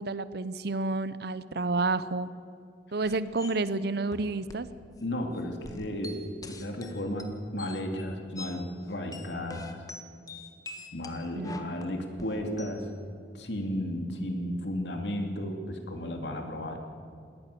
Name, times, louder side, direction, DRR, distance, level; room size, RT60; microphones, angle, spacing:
voice 1, 0.0-2.3 2.9-4.7 11.4-11.6, right 3 dB, 65° right, 16 dB, 0.8 m, -30 dB
sound 1, 3.0-3.6 4.1-4.7 5.0-5.1 5.3-8.6 8.9-12.8, left 2 dB, 20° left, 1.5 m, -45 dB
voice 2, 5.0-6.2 6.5-9.8 10.9-12.9 13.3-16.8, left 1 dB, 70° left, 4 dB, 2.8 m, -34 dB
21.5 x 18.0 x 6.9 m, 2.4 s
head